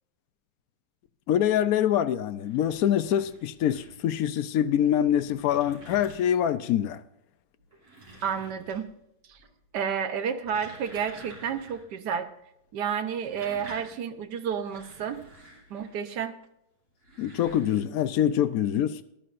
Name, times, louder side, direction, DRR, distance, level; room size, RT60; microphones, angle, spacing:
voice 1, 1.3-7.0 17.2-19.0, left 10 dB, 80° left, 0.8 m, -25 dB
sound 1, 2.2-4.2 4.9-6.6 7.6-9.0 9.3-9.8 10.2-11.9 12.2-12.3 13.0-16.1 16.9-17.8, right 1 dB, 90° right, 4.0 m, -49 dB
voice 2, 8.2-8.9 9.3-9.4 9.7-12.3 12.7-15.3 15.7-16.4, right 7 dB, 60° right, 1.4 m, -31 dB
20.0 x 11.5 x 2.5 m
omnidirectional pair, 2.2 m